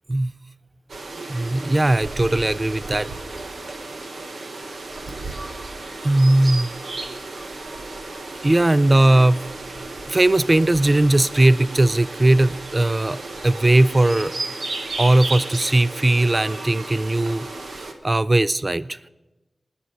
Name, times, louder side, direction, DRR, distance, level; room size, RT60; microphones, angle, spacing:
sound 1, 0.9-17.9, right 2 dB, 85° right, 1.1 m, -34 dB
voice 1, 1.3-3.1 6.0-6.7 8.4-9.4 10.1-14.3 15.0-17.5 17.7-19.0, right 1 dB, 35° right, 18 dB, 0.3 m, -18 dB
19.5 x 6.9 x 5.2 m, 1.1 s
cardioid pair, 45°, 0 cm